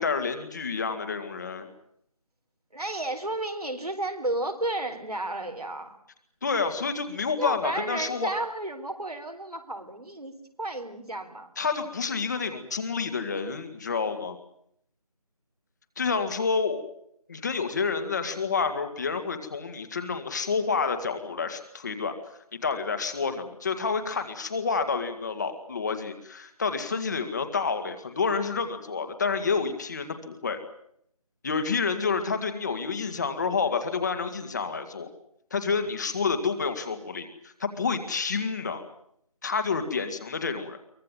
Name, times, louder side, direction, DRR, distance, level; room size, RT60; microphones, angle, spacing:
voice 1, 0.0-1.7 6.4-8.3 11.6-14.4 16.0-16.8 17.3-22.2 22.6-30.6 31.4-35.1 35.5-38.8 39.4-40.8, left 5 dB, 30° left, 8 dB, 2.1 m, -29 dB
voice 2, 2.7-5.9 7.4-10.3 10.6-11.5, right 2 dB, 80° right, 5 dB, 4.2 m, -32 dB
24.0 x 18.0 x 9.2 m, 0.69 s
figure-of-eight pair, 165°, 19 cm